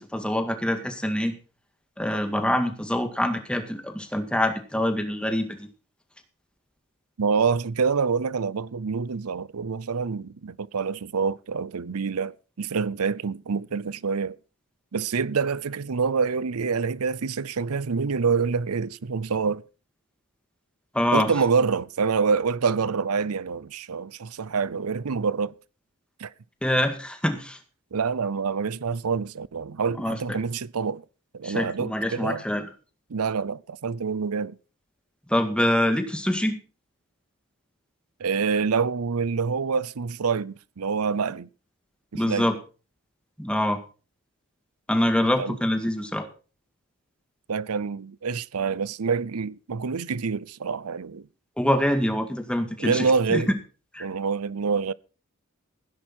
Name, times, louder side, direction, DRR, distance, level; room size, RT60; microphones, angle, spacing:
voice 1, 0.1-1.4 2.0-5.7 20.9-21.3 26.6-27.6 30.0-30.2 31.4-32.6 35.3-36.6 42.1-42.6 43.4-43.8 44.9-46.3 51.6-53.4 53.9-54.1, left 1 dB, 5° left, 1.9 m, -25 dB
voice 2, 7.2-14.4 14.9-19.6 21.1-25.5 26.2-26.3 27.9-31.0 31.3-32.4 33.1-34.6 38.2-41.5 42.1-42.5 45.4-45.6 47.5-51.3 52.8-53.5 54.0-54.9, right 5 dB, 85° right, 0.6 m, -26 dB
16.0 x 10.5 x 4.4 m
head